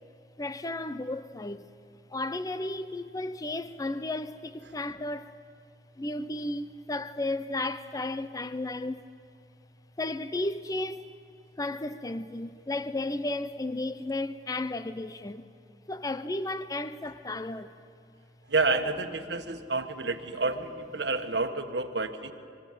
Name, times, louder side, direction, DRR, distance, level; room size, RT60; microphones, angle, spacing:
voice 1, 0.4-1.7 2.1-5.3 6.0-9.0 10.0-11.1 11.6-15.4 15.9-17.7 19.4-19.6, left 2 dB, 20° left, 0.5 m, -33 dB
voice 2, 18.5-22.3, right 3 dB, 65° right, 1.5 m, -29 dB
24.5 x 23.0 x 9.1 m
head